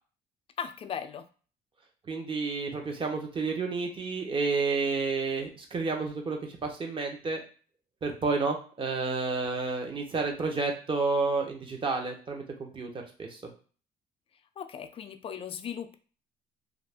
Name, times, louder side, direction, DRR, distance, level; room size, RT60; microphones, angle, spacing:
voice 1, 0.6-1.2 14.6-16.0, left 7 dB, 35° left, 8 dB, 0.4 m, -37 dB
voice 2, 2.1-7.4 8.0-12.9 13.2-13.4, right 4 dB, 30° right, 2 dB, 0.8 m, -30 dB
2.5 x 2.4 x 3.4 m, 0.39 s
cardioid pair, 110°, 17 cm